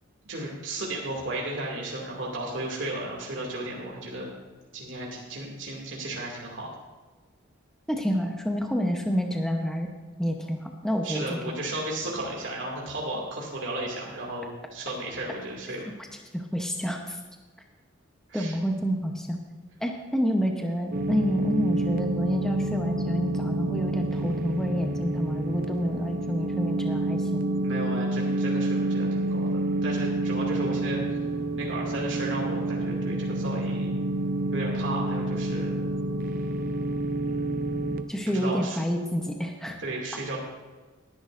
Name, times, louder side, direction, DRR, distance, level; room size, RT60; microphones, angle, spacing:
voice 1, 0.3-4.3 4.7-6.7 11.0-15.9 18.3-18.5 27.6-31.3 31.6-33.9 34.5-35.8 37.2-38.1 38.3-38.8 39.8-40.4, right 1 dB, 65° right, -3 dB, 2.5 m, -34 dB
voice 2, 7.9-9.9 10.2-11.6 16.3-17.2 18.3-19.4 19.8-27.5 38.1-39.8, equal, 5° left, 2 dB, 0.9 m, -28 dB
sound 1, 20.9-38.0, right 2 dB, 45° right, 0.6 m, -28 dB
19.0 x 10.5 x 2.6 m, 1.3 s
head